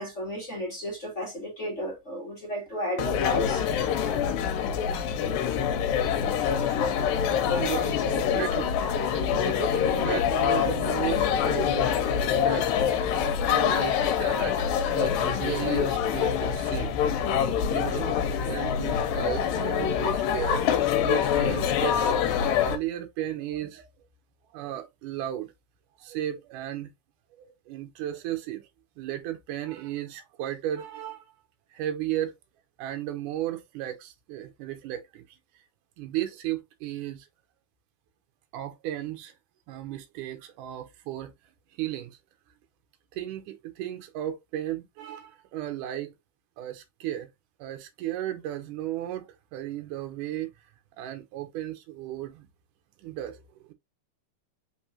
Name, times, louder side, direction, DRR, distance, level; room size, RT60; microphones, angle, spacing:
voice 1, 0.0-3.6, equal, 30° left, 1.5 m, -33 dB
sound 1, 3.0-22.8, left 8 dB, 75° left, 2.3 m, -25 dB
voice 2, 7.6-8.8 9.2-17.0 17.7-18.1 18.4-23.9 24.5-25.5 26.0-26.9 27.4-28.7 29.0-31.3 31.7-32.3 32.8-35.6 36.0-37.3 38.5-39.4 39.7-41.3 41.7-42.2 43.1-46.1 46.6-47.3 47.6-50.5 51.0-52.5 53.0-53.7, right 12 dB, 70° right, 2.2 m, -35 dB
5.3 x 3.5 x 2.8 m
omnidirectional pair, 4.2 m